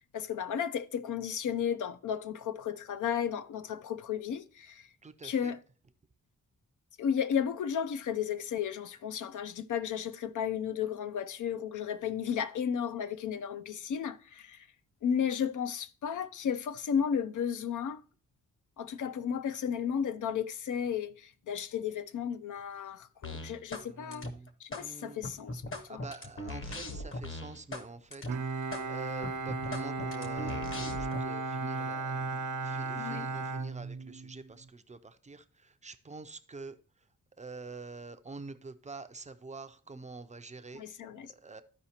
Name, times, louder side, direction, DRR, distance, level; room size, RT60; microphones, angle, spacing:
voice 1, 0.1-4.9 5.2-5.6 7.0-14.7 15.0-18.0 18.8-24.3 24.6-25.6 25.9-26.0 33.0-33.3 40.7-41.3, left 8 dB, 80° left, 0.5 m, -33 dB
voice 2, 5.0-5.5 23.8-24.5 24.8-25.2 25.9-28.2 28.9-32.2 32.6-35.4 35.8-36.7 37.4-40.8 41.4-41.6, right 3 dB, 25° right, 0.4 m, -46 dB
sound 1, 23.2-23.9 24.1-24.8 25.2-27.8 28.1-28.3 28.7-28.8 29.2-31.2, left 1 dB, 45° left, 0.9 m, -39 dB
Bowed string instrument, 28.3-34.4, right 3 dB, 80° right, 0.6 m, -35 dB
13.0 x 4.8 x 2.8 m
wide cardioid pair, 120°, 30 cm